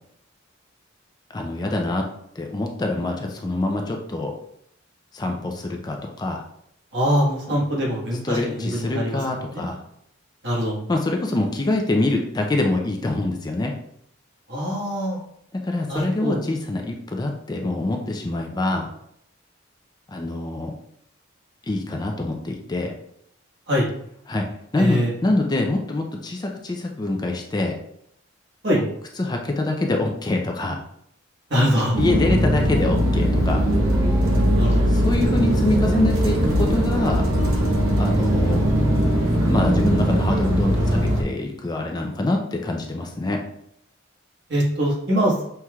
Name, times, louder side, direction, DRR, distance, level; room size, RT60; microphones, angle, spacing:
voice 1, 1.3-2.0 2.4-4.3 5.1-6.4 7.5-7.6 8.2-9.8 10.9-13.7 15.5-18.9 20.1-20.7 21.7-22.9 24.3-24.5 24.7-27.8 28.8-28.9 29.2-30.8 32.0-33.6 34.9-37.2 38.0-38.6 39.5-43.4, left 2 dB, 20° left, 2 dB, 0.4 m, -25 dB
voice 2, 6.9-9.2 9.5-9.6 10.4-10.8 14.5-15.2 15.9-16.4 23.7-23.9 24.8-25.1 28.6-28.8 31.5-31.9 34.6-34.9 44.5-45.3, equal, 60° right, -4 dB, 1.5 m, -23 dB
sound 1, 31.9-41.2, equal, 90° right, 0.8 m, -20 dB
5.7 x 3.1 x 2.3 m, 0.73 s
head